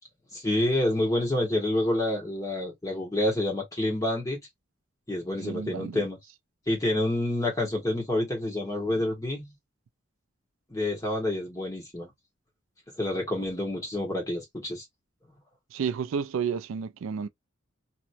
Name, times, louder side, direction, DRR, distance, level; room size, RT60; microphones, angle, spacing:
voice 1, 0.3-4.4 5.1-6.2 6.7-9.5 10.7-12.1 13.0-14.8, left 1 dB, 15° left, 1.6 m, -28 dB
voice 2, 5.4-6.0 15.7-17.3, right 6 dB, 80° right, 0.3 m, -31 dB
3.0 x 2.9 x 2.7 m
head